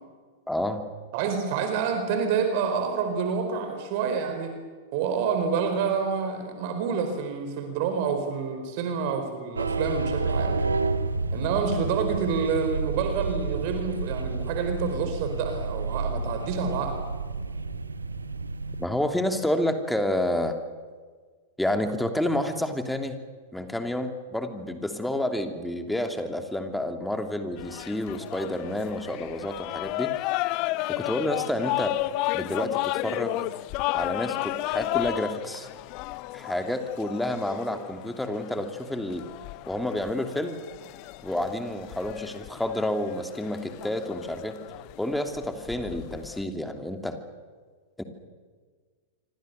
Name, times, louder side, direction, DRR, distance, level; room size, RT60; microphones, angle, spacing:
voice 1, 0.5-0.8 18.8-20.6 21.6-23.2 23.5-30.4 30.9-32.0 32.3-33.4 33.9-35.7 36.3-39.3 39.7-40.6 41.2-44.6 45.0-47.2 48.0-48.1, left 1 dB, 5° left, 5 dB, 2.9 m, -29 dB
voice 2, 1.1-4.5 4.9-10.8 11.3-17.0, right 6 dB, 45° right, 6 dB, 4.4 m, -28 dB
sound 1, 9.6-18.9, right 3 dB, 80° right, 1.3 m, -30 dB
sound 2, 27.6-46.4, left 19 dB, 40° left, 0.6 m, -33 dB
27.0 x 25.5 x 6.9 m, 1.5 s
figure-of-eight pair, 95°, 0 cm